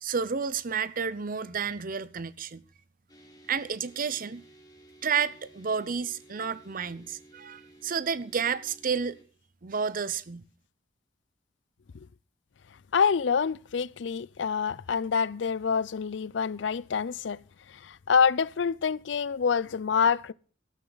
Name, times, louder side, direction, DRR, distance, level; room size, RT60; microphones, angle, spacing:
voice 1, 0.0-2.6 3.5-4.4 5.0-9.2 9.6-10.4, right 6 dB, 50° right, 0.7 m, -31 dB
sound 1, 3.1-9.2, right 2 dB, 20° left, 3.0 m, -55 dB
voice 2, 12.9-17.4 17.7-20.3, left 6 dB, 70° left, 0.5 m, -26 dB
13.0 x 12.5 x 4.0 m
head